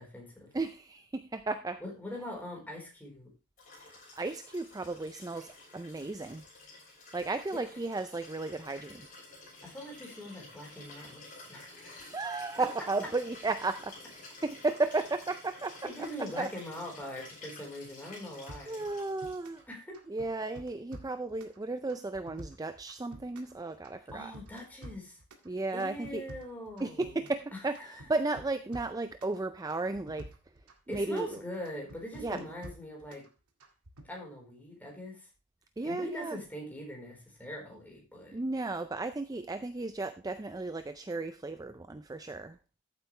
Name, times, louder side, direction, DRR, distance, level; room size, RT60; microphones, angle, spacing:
voice 1, 0.0-0.5 1.8-3.3 7.5-7.6 9.6-12.1 15.8-18.8 19.7-20.0 24.1-25.2 25.7-27.2 27.5-28.0 30.9-33.2 34.0-35.3 35.8-38.4, left 1 dB, 10° left, -1 dB, 4.2 m, -42 dB
voice 2, 0.5-1.8 3.8-6.5 7.1-9.1 12.0-16.1 16.4-16.5 18.7-19.6 20.1-24.3 25.5-26.2 26.8-30.3 30.9-31.4 32.2-32.5 35.8-36.4 38.3-42.6, right 3 dB, 15° right, 10 dB, 0.4 m, -34 dB
Liquid, 3.6-19.6 20.9-21.0, left 2 dB, 35° left, 6.9 m, -51 dB
sound 1, 18.5-19.7 19.9-21.6 21.9-23.6 23.8-25.5 25.8-27.5 27.7-29.4 29.7-31.3 31.6-33.3 33.6-34.1, right 1 dB, 85° right, 2.0 m, -49 dB
14.0 x 8.2 x 3.2 m, 0.30 s
head